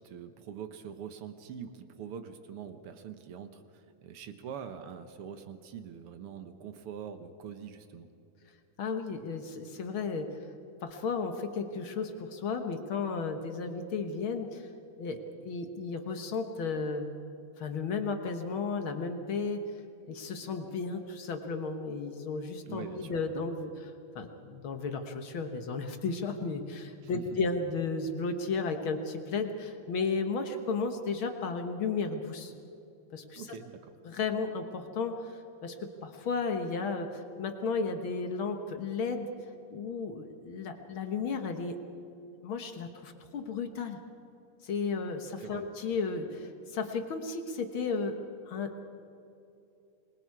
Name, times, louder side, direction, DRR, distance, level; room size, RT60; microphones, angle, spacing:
voice 1, 0.0-8.1 22.6-23.2 27.0-27.2 33.3-33.9 45.4-45.7, right 7 dB, 70° right, 9 dB, 1.4 m, -44 dB
voice 2, 8.8-10.3 10.8-14.7 15.0-17.1 17.6-19.6 20.1-32.5 33.1-33.4 34.0-39.3 39.7-41.8 42.4-44.0 44.6-48.2 48.5-48.8, left 4 dB, 60° left, 6 dB, 1.4 m, -34 dB
26.5 x 22.0 x 4.8 m, 2.7 s
omnidirectional pair, 3.8 m